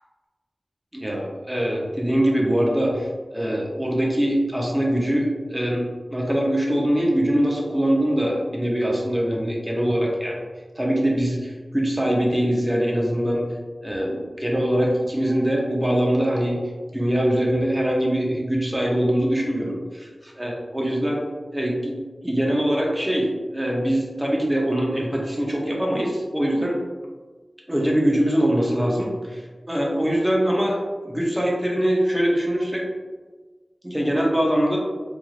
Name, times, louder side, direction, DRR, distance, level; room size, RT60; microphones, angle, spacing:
voice 1, 0.9-3.1 3.3-10.4 10.8-13.5 13.8-16.6 16.9-21.2 21.5-26.8 27.7-32.9 33.8-34.8, equal, 15° right, -2 dB, 0.7 m, -23 dB
3.1 x 2.5 x 2.4 m, 1.4 s
wide cardioid pair, 55°, 0 cm